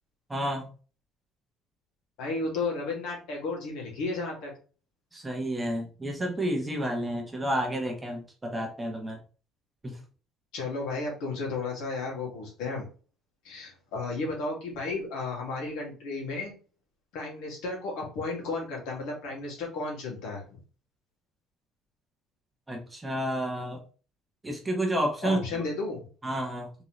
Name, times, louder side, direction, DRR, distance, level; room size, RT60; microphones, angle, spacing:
voice 1, 0.3-0.6 5.1-9.2 9.8-10.0 22.7-23.8 24.4-25.6 26.2-26.7, right 1 dB, 10° right, 1 dB, 0.9 m, -30 dB
voice 2, 2.2-4.5 10.5-12.9 13.4-16.5 17.1-20.6 25.2-26.0, left 3 dB, 85° left, -1 dB, 2.2 m, -33 dB
3.8 x 3.7 x 3.1 m, 0.38 s
cardioid pair, 175°, 0 cm